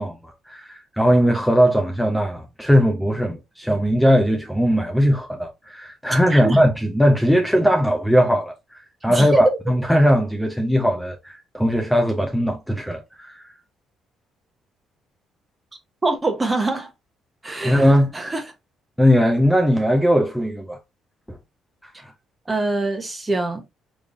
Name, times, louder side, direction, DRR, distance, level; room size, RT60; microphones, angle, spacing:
voice 1, 0.0-8.5 9.0-13.4 17.6-18.1 19.0-20.8 21.3-21.4 22.0-22.1, equal, ahead, 0.8 m, -19 dB
voice 2, 6.3-6.6 9.1-9.6 16.0-16.9 17.4-17.9 18.1-18.4 22.5-23.6, right 2 dB, 20° right, 1.1 m, -23 dB
3.7 x 3.2 x 2.5 m
supercardioid pair, 70°, 0 cm